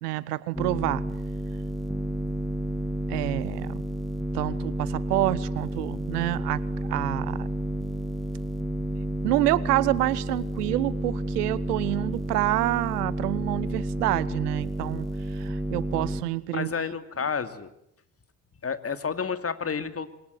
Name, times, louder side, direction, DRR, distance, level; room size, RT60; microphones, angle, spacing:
voice 1, 0.0-1.0 3.1-3.8 4.3-6.6 6.9-7.5 9.2-15.1 15.3-16.7, right 17 dB, 75° right, 20 dB, 1.1 m, -27 dB
sound 1, 0.5-16.2, right 1 dB, ahead, 2.3 m, -31 dB
voice 2, 16.5-17.7 18.6-20.2, left 6 dB, 30° left, 11 dB, 2.6 m, -30 dB
26.5 x 23.0 x 9.6 m, 0.75 s
hypercardioid pair, 60°, 47 cm